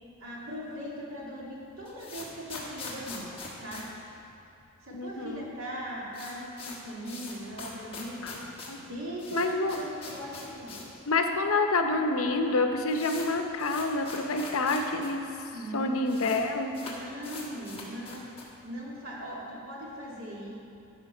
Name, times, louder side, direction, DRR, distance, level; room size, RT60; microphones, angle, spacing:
voice 1, 0.2-3.3 3.6-3.8 4.8-8.2 8.7-10.9 15.5-16.4 16.8-18.4 18.6-20.5, equal, 70° right, -5 dB, 2.3 m, -39 dB
sound 1, 1.6-4.8 5.1-5.2 5.4-5.5 5.8-11.0 11.3-11.4 12.1-12.2 12.4-15.1 15.4-15.5 15.7-16.4 16.7-18.6, left 3 dB, 25° left, 1.2 m, -43 dB
voice 2, 4.9-5.4 8.2-8.8 9.3-9.8 11.1-15.2 15.7-16.7, left 3 dB, 75° left, 5 dB, 0.7 m, -28 dB
12.5 x 5.1 x 5.5 m, 2.8 s
head